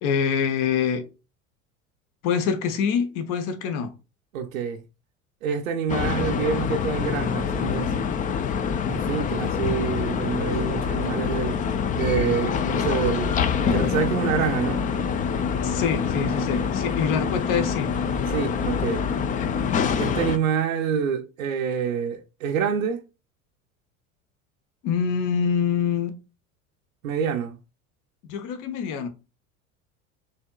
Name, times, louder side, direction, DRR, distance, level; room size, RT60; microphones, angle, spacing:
voice 1, 0.0-1.1 2.2-3.9 15.6-17.9 24.8-26.1 28.3-29.1, left 6 dB, 50° left, 0.9 m, -25 dB
voice 2, 4.3-4.8 5.4-8.0 8.9-11.6 11.9-14.8 16.3-16.4 18.3-19.0 20.0-23.0 27.0-27.6, right 7 dB, 80° right, 0.7 m, -27 dB
sound 1, 5.9-20.4, left 6 dB, 20° left, 0.4 m, -25 dB
6.4 x 2.9 x 2.3 m
hypercardioid pair, 75°, 40 cm